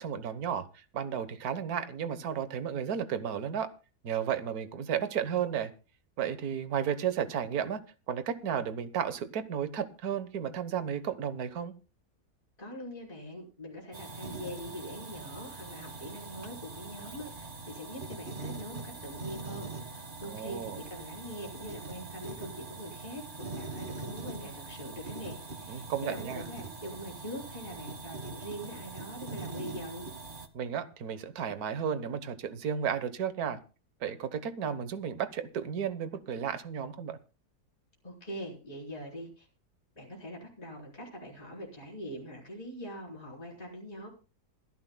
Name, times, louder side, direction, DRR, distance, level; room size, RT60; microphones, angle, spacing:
voice 1, 0.0-3.7 4.0-5.7 6.2-7.8 8.1-11.7 20.2-20.8 25.7-26.4 30.5-33.6 34.0-37.2, right 8 dB, 70° right, 11 dB, 1.6 m, -33 dB
voice 2, 12.6-30.1 38.0-39.5 40.0-44.1, equal, 25° left, -3 dB, 4.2 m, -43 dB
sound 1, 13.9-30.5, right 3 dB, 35° right, 1.5 m, -42 dB
27.5 x 10.5 x 2.2 m, 0.33 s
omnidirectional pair, 1.7 m